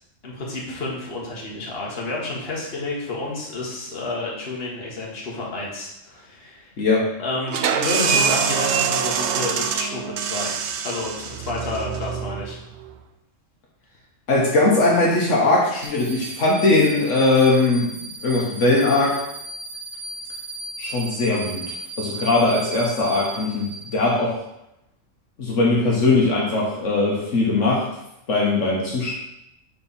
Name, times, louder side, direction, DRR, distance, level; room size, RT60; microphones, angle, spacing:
voice 1, 0.2-6.7 7.2-10.6 10.8-12.6, left 2 dB, 50° left, -3 dB, 1.5 m, -30 dB
sound 1, 7.5-12.9, right 7 dB, 70° right, 0.8 m, -24 dB
voice 2, 14.3-17.9 18.2-19.2 20.8-24.4 25.4-27.9 28.3-29.1, left 2 dB, 70° left, -3 dB, 1.5 m, -20 dB
sound 2, 15.8-24.3, right 3 dB, 55° right, 1.5 m, -36 dB
4.6 x 4.5 x 5.4 m, 0.82 s
omnidirectional pair, 1.3 m